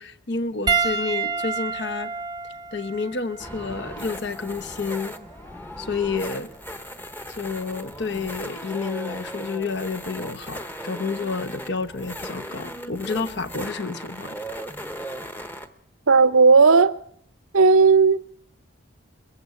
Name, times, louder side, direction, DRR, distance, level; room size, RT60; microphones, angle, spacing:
voice 1, 0.0-2.1 2.7-5.1 5.8-6.5 7.3-14.4, left 4 dB, 55° left, 1.0 m, -30 dB
Piano, 0.7-5.3 6.3-6.5 8.4-8.5, right 5 dB, 20° right, 0.8 m, -29 dB
sound 1, 3.4-15.7, equal, 10° left, 1.0 m, -37 dB
voice 2, 16.1-17.0 17.5-18.2, right 4 dB, 85° right, 0.9 m, -14 dB
22.5 x 15.0 x 8.3 m
head